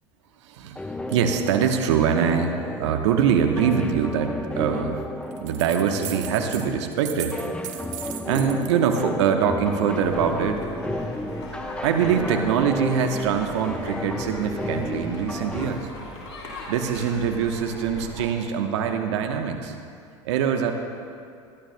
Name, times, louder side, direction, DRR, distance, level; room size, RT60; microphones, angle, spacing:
voice 1, 0.4-5.0 5.4-7.4 8.2-10.7 11.8-15.9 16.7-19.7 20.2-20.7, right 7 dB, 75° right, 5 dB, 1.0 m, -23 dB
sound 1, 0.8-15.7, left 1 dB, 5° left, 0.8 m, -33 dB
sound 2, 5.3-6.7 6.9-8.6, right 12 dB, 55° right, 1.1 m, -37 dB
sound 3, 9.9-18.2, left 1 dB, 90° left, 3.3 m, -40 dB
26.0 x 11.5 x 2.2 m, 2.4 s
hypercardioid pair, 80°, 15 cm